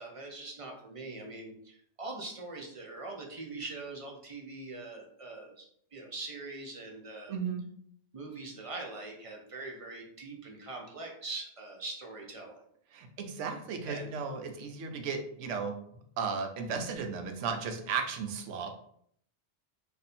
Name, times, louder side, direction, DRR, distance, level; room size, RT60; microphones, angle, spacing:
voice 1, 0.0-7.3 8.1-12.6 13.8-14.1, right 3 dB, 40° right, 0 dB, 0.5 m, -42 dB
voice 2, 7.3-7.6 12.9-15.8 16.2-18.7, right 5 dB, 85° right, 5 dB, 0.9 m, -35 dB
2.6 x 2.6 x 4.2 m, 0.65 s
omnidirectional pair, 1.2 m